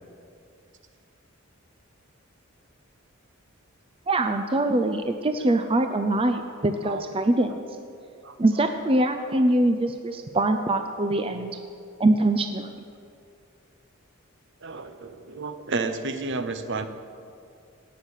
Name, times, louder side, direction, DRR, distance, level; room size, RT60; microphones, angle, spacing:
voice 1, 4.1-7.6 8.4-11.5 12.0-12.7, right 2 dB, 25° right, 7 dB, 0.5 m, -23 dB
voice 2, 8.2-8.7 9.3-9.4 14.6-16.9, right 3 dB, 60° right, 9 dB, 0.9 m, -32 dB
17.0 x 6.5 x 9.0 m, 2.4 s
head